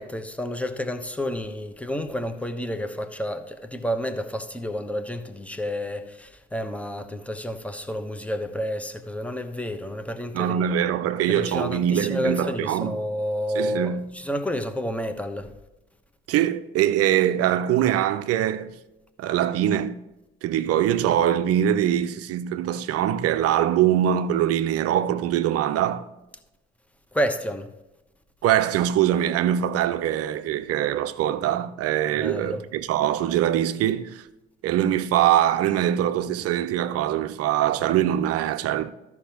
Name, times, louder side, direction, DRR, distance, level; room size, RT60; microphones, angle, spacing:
voice 1, 0.0-10.7 11.3-15.5 27.1-27.7 32.1-32.6, equal, 5° left, 1.0 m, -30 dB
voice 2, 10.3-13.0 13.5-14.1 16.3-18.8 19.2-20.0 20.4-26.1 28.4-34.2 34.6-38.9, right 11 dB, 50° right, 0.6 m, -23 dB
14.5 x 5.9 x 3.0 m
figure-of-eight pair, 50°, 31 cm